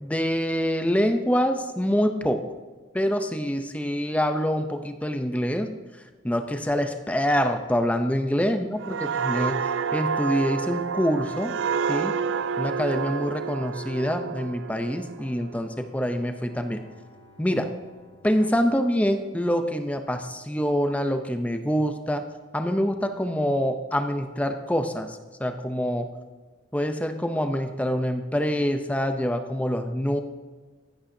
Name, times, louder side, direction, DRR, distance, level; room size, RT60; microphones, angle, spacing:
voice 1, 0.0-2.4 2.9-5.8 6.2-11.5 11.9-12.2 12.6-16.8 17.4-17.7 18.2-22.2 22.5-26.1 26.7-30.2, equal, 10° left, 7 dB, 0.5 m, -25 dB
sound 1, 8.8-16.3 16.7-16.9, right 6 dB, 80° right, 0.3 m, -29 dB
Bowed string instrument, 15.9-19.6, left 3 dB, 65° left, 3.6 m, -58 dB
15.5 x 8.6 x 2.7 m, 1.4 s
head